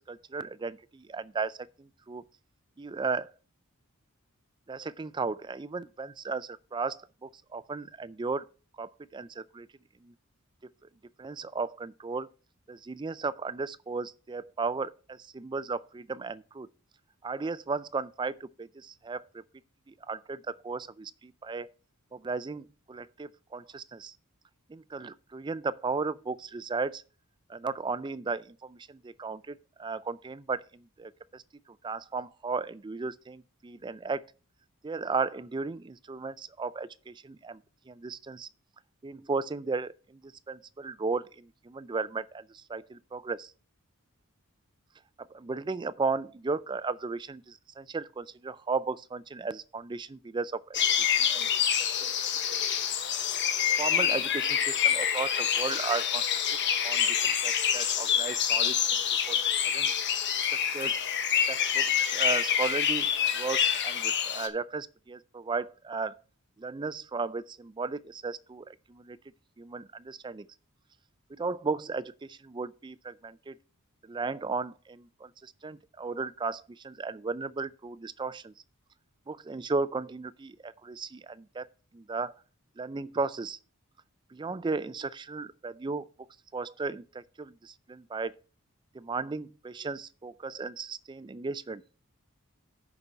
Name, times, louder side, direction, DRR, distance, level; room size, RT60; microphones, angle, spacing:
voice 1, 0.0-2.2 2.8-3.3 4.7-8.4 8.8-9.7 10.0-10.1 11.2-12.3 12.7-16.7 17.2-19.2 19.9-21.7 22.1-24.1 24.7-27.0 27.5-31.4 31.8-34.2 34.8-37.6 37.9-38.5 39.0-43.5 45.3-50.8 51.3-51.5 53.8-56.3 56.8-59.0 59.3-59.4 59.7-59.9 60.5-61.0 61.5-66.2 66.6-69.2 69.6-70.5 71.3-73.6 74.0-78.5 79.3-81.7 81.9-82.3 82.8-83.6 84.3-86.0 86.5-88.4 88.9-91.8, right 4 dB, 20° right, 0.4 m, -35 dB
sound 1, 50.7-64.5, left 8 dB, 55° left, 1.1 m, -27 dB
6.8 x 5.9 x 6.5 m
head